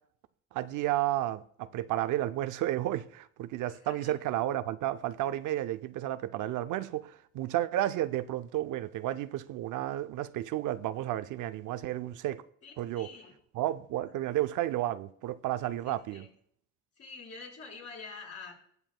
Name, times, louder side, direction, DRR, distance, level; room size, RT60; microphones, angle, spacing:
voice 1, 0.5-12.4 12.8-13.1 13.5-16.3, right 13 dB, 80° right, 0.5 m, -32 dB
voice 2, 3.7-4.2 12.6-13.4 15.8-16.3 17.0-18.5, left 4 dB, 55° left, 4.8 m, -47 dB
20.0 x 7.2 x 2.2 m
cardioid pair, 90°, 30 cm